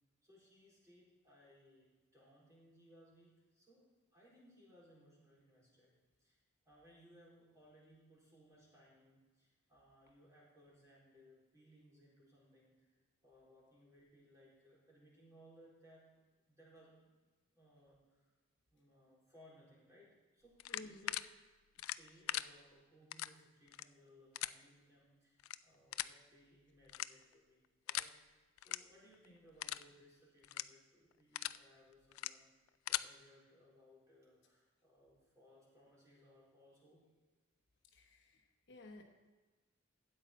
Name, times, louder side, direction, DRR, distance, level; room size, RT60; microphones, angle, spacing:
voice 1, 0.2-6.4 6.7-12.8 13.2-17.1 17.5-18.3 18.7-21.3 21.7-37.0, equal, 15° right, -6 dB, 3.9 m, -65 dB
sound 1, 20.6-21.2 21.8-22.4 23.1-23.3 23.7-23.8 24.3-24.5 25.4-25.6 25.9-26.1 26.9-27.3 27.9-28.1 28.6-28.8 29.1-29.3 29.6-29.8 30.4-30.6 31.1-31.6 32.1-32.3 32.7-33.0, left 14 dB, 90° left, 0.3 m, -39 dB
voice 2, 20.7-21.1 37.9-39.0, left 2 dB, 60° left, 3 dB, 1.1 m, -55 dB
12.5 x 8.8 x 4.2 m, 1.3 s
head